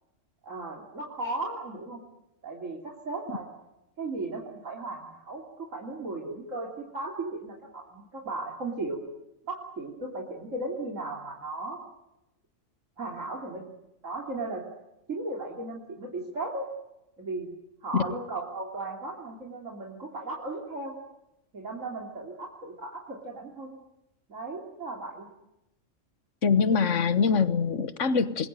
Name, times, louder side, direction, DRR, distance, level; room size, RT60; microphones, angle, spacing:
voice 1, 0.4-2.0 2.4-3.5 4.0-9.0 9.5-11.8 13.0-13.7 14.0-14.6 15.1-16.7 17.2-17.5 17.8-21.0 21.5-23.8 24.3-25.3, right 2 dB, 85° right, 0 dB, 3.5 m, -36 dB
voice 2, 26.4-28.5, left 5 dB, 70° left, 13 dB, 1.6 m, -24 dB
27.0 x 21.0 x 9.0 m, 0.90 s
omnidirectional pair, 1.3 m